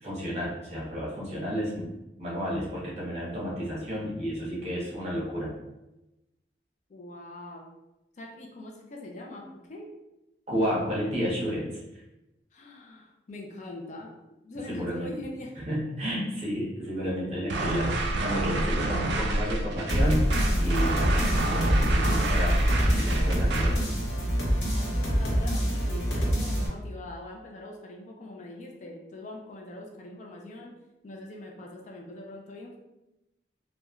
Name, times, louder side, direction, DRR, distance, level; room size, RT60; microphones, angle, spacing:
voice 1, 0.0-1.9 2.2-5.5 10.5-11.7 14.7-15.1 15.7-23.8, equal, 40° right, -6 dB, 0.9 m, -31 dB
voice 2, 6.9-7.7 8.2-9.4 9.7-9.9 12.5-14.1 14.4-15.6 24.6-30.8 31.0-32.8, left 1 dB, 40° left, 0 dB, 0.4 m, -42 dB
sound 1, 17.5-23.8, right 2 dB, 75° right, 0.3 m, -28 dB
sound 2, 19.9-26.7, equal, 70° left, 0.8 m, -25 dB
3.0 x 2.1 x 2.3 m, 0.96 s
head